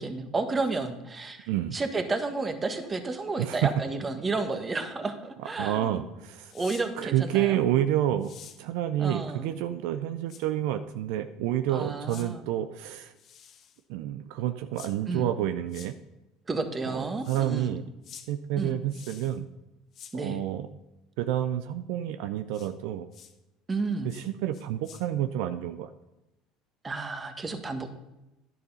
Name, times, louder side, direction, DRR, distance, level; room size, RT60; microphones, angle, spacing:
voice 1, 0.0-6.0 6.5-7.6 9.0-9.5 11.7-12.4 15.1-15.3 16.5-17.8 18.6-18.8 20.1-20.4 23.7-24.1 26.8-27.9, right 3 dB, 25° right, 7 dB, 1.5 m, -31 dB
voice 2, 5.6-6.5 7.0-8.3 8.6-13.1 13.9-15.9 16.8-17.8 18.3-19.5 20.1-20.7 21.2-23.1 24.0-25.9, right 12 dB, 75° right, 9 dB, 0.5 m, -29 dB
sound 1, 6.5-6.8 8.2-8.6 10.3-10.4 12.1-12.3 13.1-13.8 14.7-14.9 15.7-15.9 17.2-17.4 18.0-18.2 18.9-19.4 19.9-20.1 22.5-22.7 23.1-23.3 24.1-24.3 24.5-25.0, left 8 dB, 55° left, 1.6 m, -48 dB
10.5 x 6.7 x 5.5 m, 0.96 s
hypercardioid pair, 85°, 0 cm